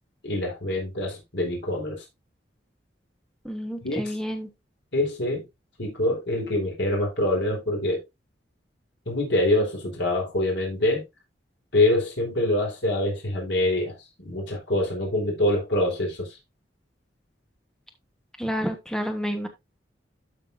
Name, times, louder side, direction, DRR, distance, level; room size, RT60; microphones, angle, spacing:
voice 1, 0.2-2.0 3.8-4.0 4.9-5.4 5.8-8.0 9.1-11.0 11.7-14.0 14.2-16.3, left 1 dB, 80° left, 4.3 m, -25 dB
voice 2, 3.4-4.5 18.4-19.5, equal, 5° left, 1.2 m, -29 dB
12.5 x 5.9 x 2.6 m
head